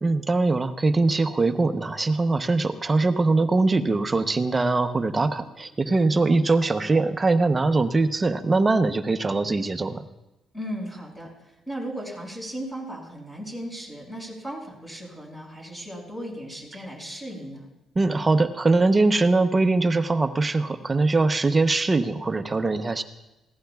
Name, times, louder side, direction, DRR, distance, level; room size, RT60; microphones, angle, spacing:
voice 1, 0.0-10.0 18.0-23.0, right 3 dB, 25° right, 8 dB, 0.8 m, -22 dB
voice 2, 10.5-17.7, equal, 10° left, -1 dB, 6.0 m, -36 dB
21.0 x 16.0 x 2.4 m, 0.97 s
cardioid pair, 90°, 0 cm